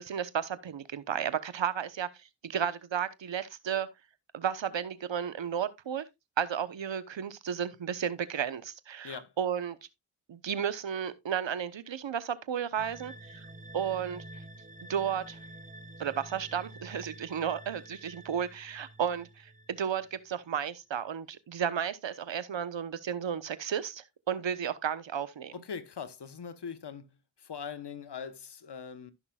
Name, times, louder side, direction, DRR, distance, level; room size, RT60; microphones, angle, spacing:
voice 1, 0.0-3.9 4.3-6.1 6.4-9.8 10.3-13.5 13.7-14.2 14.9-15.4 16.0-25.5, right 8 dB, 65° right, 1.0 m, -33 dB
sound 1, 12.8-20.3, right 1 dB, 15° right, 1.5 m, -49 dB
voice 2, 25.5-27.1 27.4-29.1, left 6 dB, 55° left, 1.1 m, -41 dB
15.5 x 5.9 x 2.3 m
cardioid pair, 50°, 48 cm